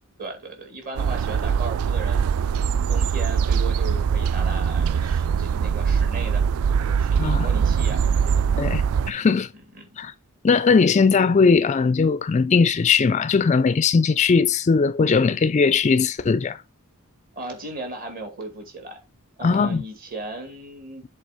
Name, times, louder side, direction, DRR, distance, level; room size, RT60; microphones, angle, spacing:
voice 1, 0.2-2.3 2.9-8.4 9.3-9.4 9.7-10.0 17.3-19.0 19.4-21.0, right 2 dB, 40° right, 2.2 m, -36 dB
sound 1, 1.0-9.1, right 6 dB, 65° right, 0.3 m, -22 dB
voice 2, 8.6-9.5 10.0-10.1 10.4-16.6 19.4-19.8, left 5 dB, 30° left, 0.3 m, -19 dB
7.9 x 3.7 x 4.9 m
head